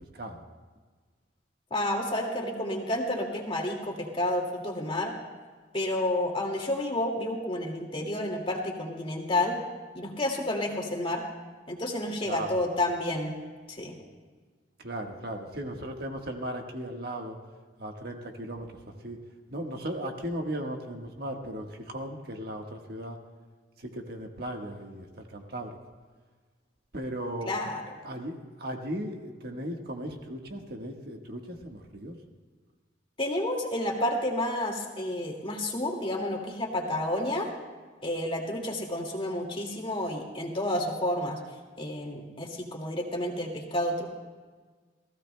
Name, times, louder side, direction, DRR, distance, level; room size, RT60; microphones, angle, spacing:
voice 1, 1.7-5.1 5.7-9.6 9.9-11.2 11.7-13.3 13.7-13.9 27.5-27.8 33.2-37.5 38.0-41.4 41.8-44.1, left 1 dB, 30° left, 0 dB, 2.1 m, -30 dB
voice 2, 12.2-12.6 14.8-17.4 17.8-19.2 19.5-23.2 23.8-25.8 26.9-27.5 28.0-32.2, right 1 dB, 60° right, 2 dB, 1.4 m, -37 dB
29.0 x 15.5 x 2.2 m, 1.4 s
head